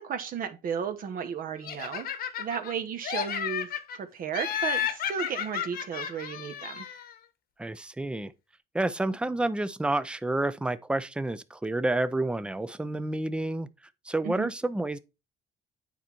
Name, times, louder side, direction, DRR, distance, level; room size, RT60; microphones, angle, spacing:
voice 1, 0.0-2.1 2.4-6.9 14.2-14.5, right 7 dB, 55° right, 1.3 m, -34 dB
Laughter, 1.6-2.7 3.0-4.0 4.3-7.1, left 8 dB, 60° left, 1.1 m, -33 dB
voice 2, 7.6-8.3 8.7-13.7 14.1-15.0, right 2 dB, 5° right, 0.5 m, -29 dB
9.2 x 4.3 x 4.5 m
cardioid pair, 110°, 17 cm